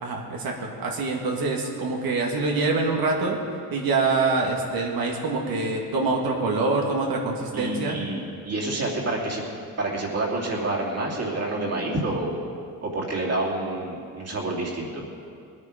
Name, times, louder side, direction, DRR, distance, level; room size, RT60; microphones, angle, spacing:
voice 1, 0.0-3.4 3.7-8.0, right 3 dB, 75° right, 0 dB, 1.9 m, -25 dB
voice 2, 7.5-9.4 9.8-12.4 12.8-15.0, right 2 dB, 45° right, -3 dB, 2.8 m, -28 dB
20.0 x 9.6 x 5.1 m, 2.4 s
cardioid pair, 125°, 36 cm